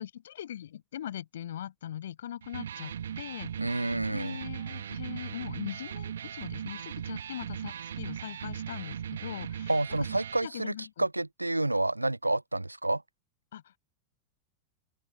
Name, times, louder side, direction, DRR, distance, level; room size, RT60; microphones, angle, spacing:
voice 1, 0.0-3.8 4.1-9.7 10.4-11.0 13.5-13.8, left 11 dB, 60° left, 6.2 m, -41 dB
Electric guitar, 2.4-10.4, right 9 dB, 65° right, 1.8 m, -38 dB
voice 2, 3.6-4.4 9.7-10.7 11.0-13.0, right 2 dB, 85° right, 0.5 m, -29 dB
open air
figure-of-eight pair, 90°, 0 cm